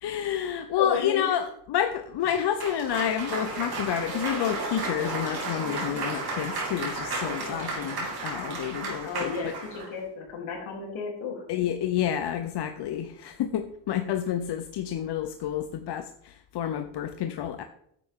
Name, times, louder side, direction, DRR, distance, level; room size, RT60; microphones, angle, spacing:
voice 1, 0.0-9.5 11.5-17.6, left 10 dB, 55° left, 8 dB, 0.7 m, -29 dB
voice 2, 0.8-1.2 5.6-6.0 7.4-7.8 8.4-8.5 9.0-11.4, left 5 dB, 70° left, -1 dB, 3.3 m, -34 dB
Cheering / Applause, 2.2-9.9, right 2 dB, 50° right, 3.3 m, -33 dB
10.0 x 8.0 x 3.7 m, 0.71 s
cardioid pair, 95°, 49 cm